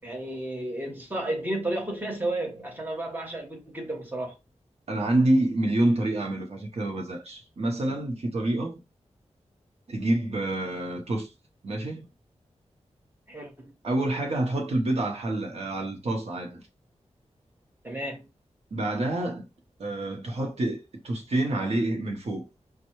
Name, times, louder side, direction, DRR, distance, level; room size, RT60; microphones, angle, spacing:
voice 1, 0.0-4.3 13.3-13.7 17.8-18.3, right 1 dB, 15° right, 1.3 m, -32 dB
voice 2, 4.9-8.8 9.9-11.3 11.6-12.1 13.8-16.6 18.7-19.4 19.8-22.5, right 1 dB, 60° right, 0.8 m, -27 dB
5.3 x 2.2 x 3.0 m
wide cardioid pair, 110°, 12 cm